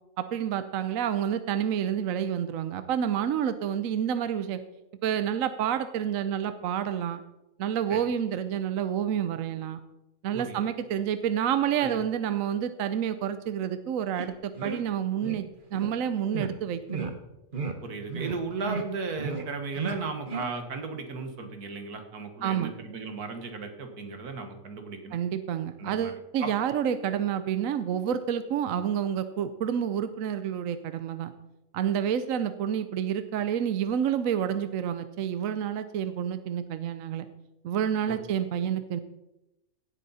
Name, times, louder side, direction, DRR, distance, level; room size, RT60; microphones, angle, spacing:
voice 1, 0.2-4.6 5.0-7.2 7.6-9.8 10.2-15.5 15.7-17.1 22.4-22.7 25.1-31.3 31.7-37.2 37.6-39.0, right 9 dB, 65° right, 11 dB, 1.0 m, -29 dB
sound 1, 14.2-14.3 14.5-14.8 15.2-15.4 15.7-15.9 16.3-16.5 16.9-17.1 17.5-17.7 18.1-18.4 18.6-18.8 19.2-19.4 19.7-20.0 20.3-20.4, right 5 dB, 35° right, 1.2 m, -33 dB
voice 2, 17.8-25.2 25.8-26.1 26.4-26.5 38.1-38.2, right 4 dB, 85° right, 6 dB, 2.0 m, -35 dB
16.5 x 8.4 x 4.1 m, 0.93 s
omnidirectional pair, 1.6 m